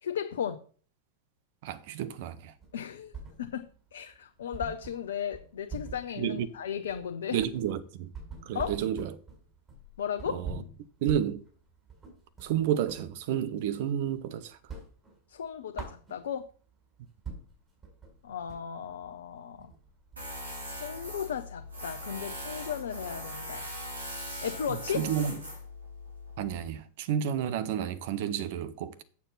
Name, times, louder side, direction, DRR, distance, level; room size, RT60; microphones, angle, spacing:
voice 1, 0.0-0.6 2.7-3.7 3.9-7.4 8.5-8.8 10.0-10.4 15.3-16.5 18.2-19.7 20.6-23.7 24.4-25.1, left 8 dB, 65° left, 0.7 m, -35 dB
voice 2, 1.6-2.5 6.2-6.5 7.3-8.1 8.4-9.1 10.3-10.6 11.0-11.4 12.4-14.6 24.7-25.4 26.4-29.0, right 9 dB, 50° right, 0.9 m, -31 dB
sound 1, 2.6-3.8 4.1-4.2 4.5-13.1 13.5-14.3 14.5-16.5 17.0-17.1 17.2-21.4, right 4 dB, 20° right, 4.8 m, -44 dB
Tools, 20.2-26.7, equal, 75° right, 3.1 m, -40 dB
8.6 x 7.1 x 5.5 m
figure-of-eight pair, 90°, 0 cm